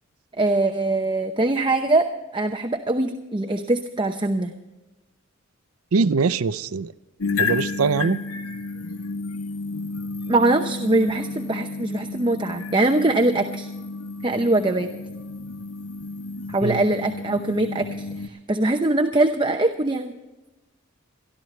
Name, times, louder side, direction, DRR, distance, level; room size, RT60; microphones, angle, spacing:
voice 1, 0.4-2.1 2.3-4.5 10.3-13.7 14.2-14.9 16.5-20.2, right 2 dB, 25° right, 5 dB, 0.8 m, -22 dB
voice 2, 5.9-6.9 7.4-8.2 16.6-16.8, right 4 dB, 85° right, 15 dB, 0.5 m, -22 dB
sound 1, 7.2-18.3, left 3 dB, 80° left, 0.8 m, -31 dB
22.5 x 13.5 x 3.2 m, 1.1 s
head